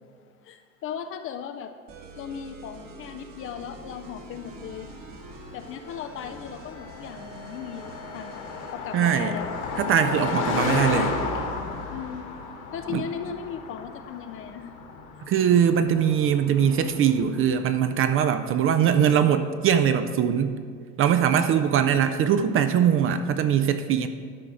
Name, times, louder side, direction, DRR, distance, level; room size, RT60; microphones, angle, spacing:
voice 1, 0.4-1.7 2.2-4.9 5.5-8.4 8.7-9.6 11.9-12.3 12.7-14.7, left 8 dB, 30° left, 8 dB, 0.4 m, -37 dB
sound 1, 1.9-8.8, right 3 dB, 45° right, 1.4 m, -45 dB
Car passing by, 4.1-17.8, left 4 dB, 60° left, 1.7 m, -33 dB
voice 2, 8.9-9.3 9.8-11.2 12.9-13.0 15.3-20.5 21.0-24.1, right 8 dB, 30° right, 9 dB, 0.4 m, -21 dB
Boom, 16.5-18.4, right 2 dB, 80° right, 2.5 m, -46 dB
12.5 x 4.6 x 4.9 m, 2.1 s
hypercardioid pair, 90°, 45 cm